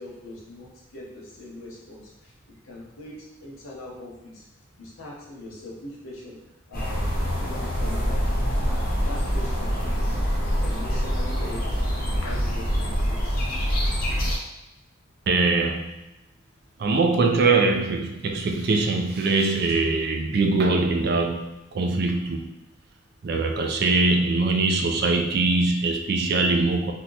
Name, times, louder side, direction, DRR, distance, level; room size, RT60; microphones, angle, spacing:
voice 1, 0.0-2.3 2.6-4.4 4.8-6.4 6.7-7.1 7.4-8.2 8.6-10.2 10.6-11.8 12.2-13.4, left 1 dB, 85° left, -4 dB, 0.9 m, -41 dB
sound 1, 6.7-14.3, equal, 45° left, 0.7 m, -25 dB
voice 2, 15.3-16.0 16.8-22.5 23.2-26.9, right 3 dB, 50° right, 3 dB, 0.4 m, -22 dB
2.8 x 2.2 x 3.9 m, 0.93 s
head